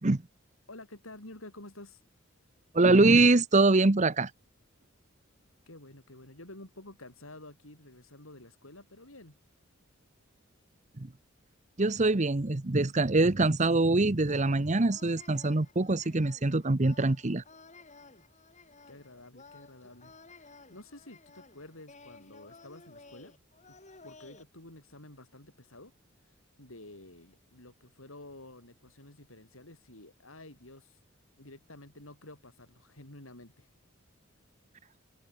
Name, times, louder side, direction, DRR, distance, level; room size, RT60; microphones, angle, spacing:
voice 1, 0.7-2.0 5.7-9.4 18.9-23.3 23.7-23.8 24.0-25.9 26.2-31.0 31.4-33.7, left 2 dB, 85° left, 7.1 m, -50 dB
voice 2, 2.7-4.3 11.0-11.1 11.8-17.4, right 2 dB, 35° right, 0.9 m, -24 dB
sound 1, 14.2-24.4, left 3 dB, 35° left, 6.8 m, -55 dB
open air
head